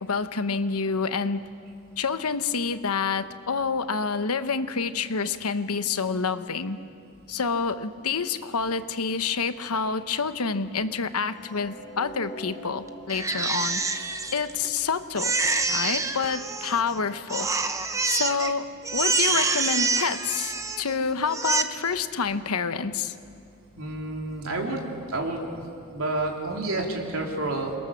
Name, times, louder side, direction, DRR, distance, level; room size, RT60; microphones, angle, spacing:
voice 1, 0.0-1.4 2.0-6.8 7.3-14.0 14.3-15.3 15.7-17.5 18.0-18.7 18.9-23.1, left 5 dB, 85° left, 11 dB, 1.0 m, -28 dB
sound 1, 11.3-17.5, equal, 20° left, 3.6 m, -46 dB
Crying sobbing, 13.1-14.8 15.2-17.0 17.3-18.5 18.8-20.9 21.3-21.6, right 3 dB, 15° right, 0.7 m, -26 dB
voice 2, 23.8-24.8 25.1-25.6 25.9-27.8, right 2 dB, 70° right, 0 dB, 3.5 m, -29 dB
29.0 x 21.5 x 7.2 m, 2.5 s
head